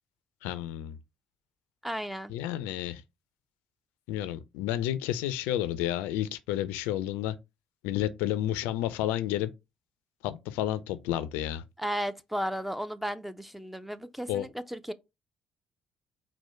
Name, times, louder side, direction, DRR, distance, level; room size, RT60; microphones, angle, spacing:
voice 1, 0.4-1.0 2.3-3.0 4.1-7.4 7.8-9.5 10.2-11.7 14.3-14.5, left 12 dB, 70° left, 0.4 m, -31 dB
voice 2, 1.8-2.3 11.8-14.9, equal, 5° right, 0.5 m, -34 dB
4.4 x 2.1 x 4.3 m
figure-of-eight pair, 45°, 3 cm